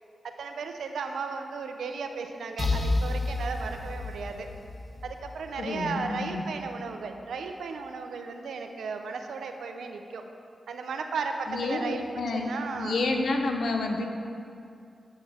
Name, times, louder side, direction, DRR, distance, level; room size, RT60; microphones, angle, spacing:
voice 1, 0.4-4.5 5.0-10.2 10.7-12.0 12.3-13.0, right 4 dB, 85° right, 5 dB, 0.5 m, -35 dB
sound 1, 2.6-6.3, left 2 dB, 40° left, 0.8 m, -31 dB
voice 2, 5.6-6.4 11.5-14.1, left 3 dB, 75° left, 3 dB, 0.7 m, -29 dB
8.2 x 7.1 x 3.5 m, 2.4 s
supercardioid pair, 45°, 0 cm